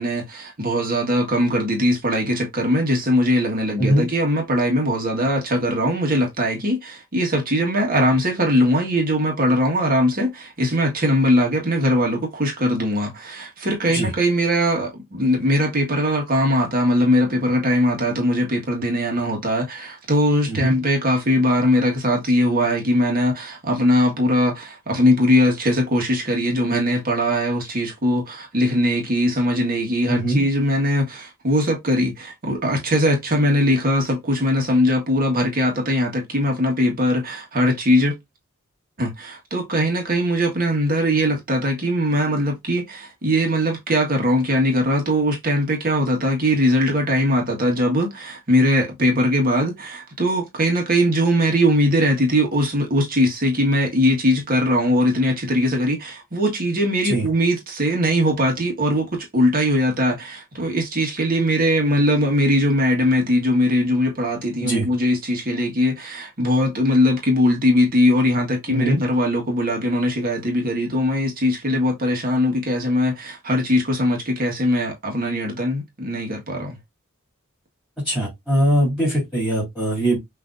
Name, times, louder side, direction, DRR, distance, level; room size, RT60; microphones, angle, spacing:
voice 1, 0.0-38.1 39.0-76.8, equal, 45° right, 1.6 m, -20 dB
voice 2, 30.1-30.4 57.0-57.3 64.6-64.9 68.7-69.0 78.0-80.2, right 1 dB, ahead, 3.2 m, -21 dB
6.4 x 3.2 x 2.6 m
head